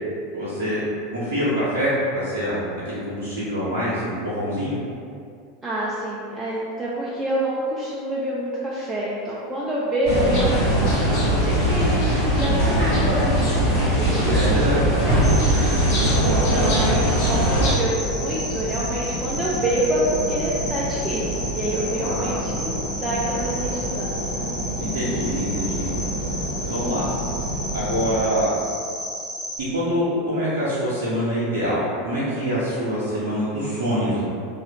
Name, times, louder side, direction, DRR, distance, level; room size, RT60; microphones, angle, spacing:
voice 1, 0.3-0.8 1.1-2.6 2.9-4.7 14.3-14.8 15.5-15.7 21.9-22.4 24.8-25.9 26.6-27.0 27.7-28.5 29.7-34.2, equal, 65° right, -9 dB, 0.7 m, -25 dB
voice 2, 5.6-14.8 15.0-15.2 16.5-24.5, right 1 dB, 15° right, -7 dB, 0.4 m, -27 dB
sound 1, 10.1-17.7, equal, 60° left, 0.9 m, -20 dB
Cricket, 15.2-29.6, left 1 dB, 20° left, 0.8 m, -33 dB
sound 2, 18.0-28.2, right 1 dB, 85° left, 0.7 m, -30 dB
3.2 x 2.3 x 2.8 m, 2.4 s
figure-of-eight pair, 80°, 0 cm